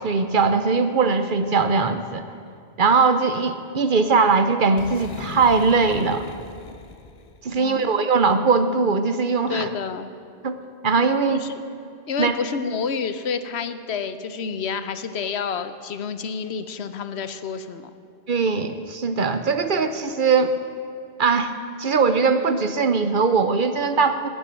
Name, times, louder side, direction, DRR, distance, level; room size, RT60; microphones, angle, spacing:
voice 1, 0.0-2.2 2.8-6.3 7.4-9.7 10.4-10.6 10.8-11.4 12.2-12.4 18.3-20.5 21.2-21.5 21.8-24.3, right 4 dB, 50° right, 9 dB, 0.8 m, -20 dB
Boom, 4.8-7.5, left 4 dB, 45° left, 0.7 m, -39 dB
voice 2, 7.6-7.9 9.5-10.1 11.3-11.6 12.1-17.9, left 6 dB, 70° left, 11 dB, 1.0 m, -29 dB
18.5 x 6.2 x 9.3 m, 2.5 s
omnidirectional pair, 1.2 m